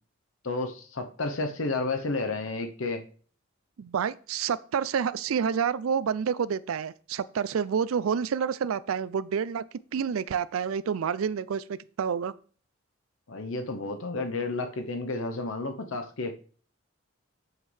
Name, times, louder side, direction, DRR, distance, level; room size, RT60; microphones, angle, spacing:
voice 1, 0.4-3.0 13.3-16.4, left 3 dB, 75° left, 6 dB, 0.9 m, -31 dB
voice 2, 3.8-12.3, right 7 dB, 90° right, 16 dB, 0.4 m, -29 dB
7.9 x 7.5 x 3.3 m, 0.42 s
head